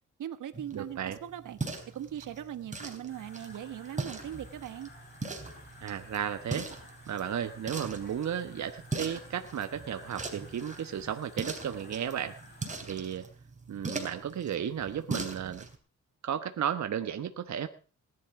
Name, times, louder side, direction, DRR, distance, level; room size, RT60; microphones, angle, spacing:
voice 1, 0.2-1.6 1.9-4.9, right 10 dB, 80° right, 11 dB, 1.4 m, -40 dB
sound 1, 0.5-15.8, right 3 dB, 25° right, 3.6 m, -41 dB
voice 2, 0.7-1.2 5.8-6.7 7.1-12.4 12.8-13.3 13.7-15.7 16.2-17.7, right 9 dB, 65° right, 8 dB, 1.2 m, -34 dB
sound 2, 3.1-12.8, left 2 dB, 30° left, 7.1 m, -53 dB
19.0 x 11.0 x 4.8 m, 0.38 s
cardioid pair, 105°, 31 cm